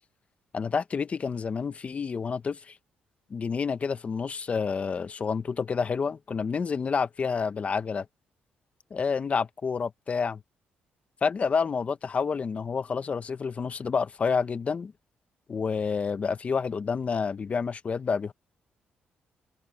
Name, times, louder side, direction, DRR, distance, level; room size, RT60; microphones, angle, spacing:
voice 1, 0.5-2.8 3.3-8.1 8.9-10.4 11.2-14.9 15.5-18.3, left 5 dB, 40° left, 1.2 m, -29 dB
cardioid pair, 85°, 3 cm